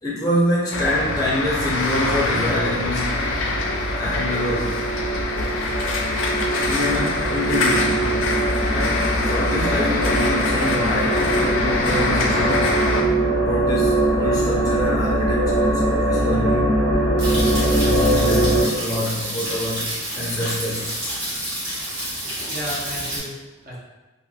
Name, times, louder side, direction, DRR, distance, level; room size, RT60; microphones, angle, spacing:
voice 1, 0.0-3.1 4.0-4.8 6.6-8.1 8.7-16.7 17.3-19.8 20.1-21.0, left 1 dB, 20° left, -5 dB, 0.5 m, -26 dB
sound 1, 0.7-13.0, left 2 dB, 75° left, 0.4 m, -24 dB
sound 2, 2.0-18.6, right 1 dB, 5° right, 1.1 m, -22 dB
sound 3, 17.2-23.2, right 1 dB, 70° right, 1.3 m, -29 dB
voice 2, 22.2-23.8, equal, 40° right, -6 dB, 0.8 m, -34 dB
3.1 x 2.6 x 2.2 m, 1.1 s
head